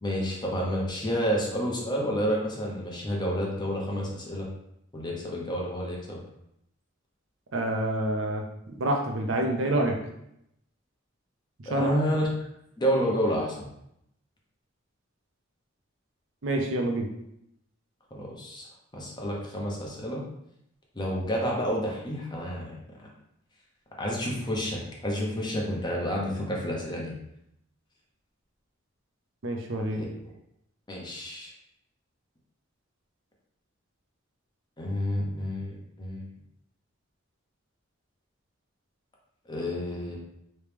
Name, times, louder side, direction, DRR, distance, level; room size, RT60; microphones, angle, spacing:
voice 1, 0.0-4.5 4.9-6.2 11.7-12.3 12.8-13.6 18.1-18.7 18.9-20.2 20.9-22.7 24.0-27.1 29.9-30.3 30.9-31.5 34.8-36.3 39.5-40.2, equal, 20° left, -2 dB, 0.8 m, -30 dB
voice 2, 7.5-9.9 11.7-11.9 16.4-17.1 29.4-30.0, right 1 dB, 70° right, 2 dB, 0.6 m, -27 dB
3.1 x 3.0 x 3.4 m, 0.78 s
head